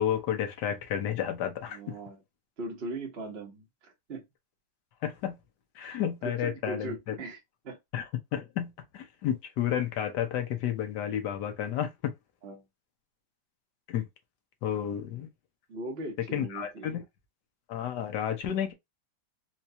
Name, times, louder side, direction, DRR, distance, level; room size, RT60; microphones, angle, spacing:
voice 1, 0.0-2.0 5.0-5.4 5.8-7.2 7.9-8.0 8.3-12.1 13.9-14.1 14.6-15.3 16.3-17.0 17.7-18.7, left 10 dB, 65° left, 1.2 m, -31 dB
voice 2, 1.7-2.2 2.6-4.3 5.8-7.4 7.6-7.8 12.4-12.6 15.7-17.0, right 2 dB, 45° right, 0.9 m, -39 dB
4.4 x 2.3 x 2.7 m
omnidirectional pair, 2.3 m